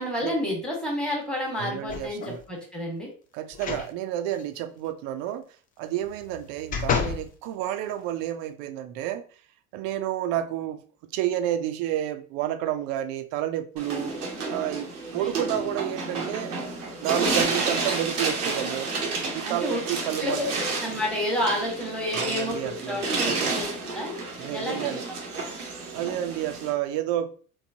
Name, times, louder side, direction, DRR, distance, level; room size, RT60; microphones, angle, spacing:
voice 1, 0.0-2.2 2.5-3.1 15.2-15.3 19.4-19.8 20.2-24.2 24.5-25.0, left 1 dB, ahead, 1.2 m, -30 dB
voice 2, 1.6-2.4 3.3-5.5 5.8-9.2 9.7-14.1 14.5-16.6 17.0-18.9 19.3-20.6 22.1-23.0 23.2-23.5 24.4-25.0 25.9-27.3, right 12 dB, 55° right, 0.5 m, -30 dB
sound 1, 1.9-2.4 3.5-3.9 4.3-4.4 6.0-7.3 7.9-8.0, left 6 dB, 20° left, 0.3 m, -30 dB
sound 2, 13.8-26.7, right 3 dB, 90° right, 0.7 m, -30 dB
3.0 x 2.1 x 2.6 m
hypercardioid pair, 70°, 44 cm